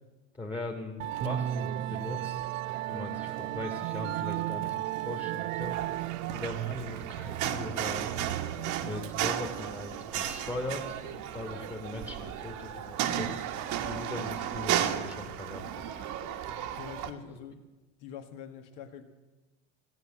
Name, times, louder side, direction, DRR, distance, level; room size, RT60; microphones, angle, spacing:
voice 1, 0.3-2.5 2.9-5.8 6.3-8.1 8.8-13.5 13.9-15.8, left 2 dB, 10° left, 0 dB, 1.8 m, -40 dB
Musical instrument, 1.0-16.5, right 16 dB, 85° right, 0.5 m, -37 dB
Bass guitar, 1.2-7.4, right 8 dB, 25° right, 0.5 m, -41 dB
sound 1, 5.6-17.1, right 10 dB, 50° right, 1.3 m, -34 dB
voice 2, 13.0-13.3 16.8-17.6 18.0-19.0, left 7 dB, 60° left, 7 dB, 1.8 m, -45 dB
15.0 x 8.8 x 7.4 m, 1.2 s
supercardioid pair, 115°, 38 cm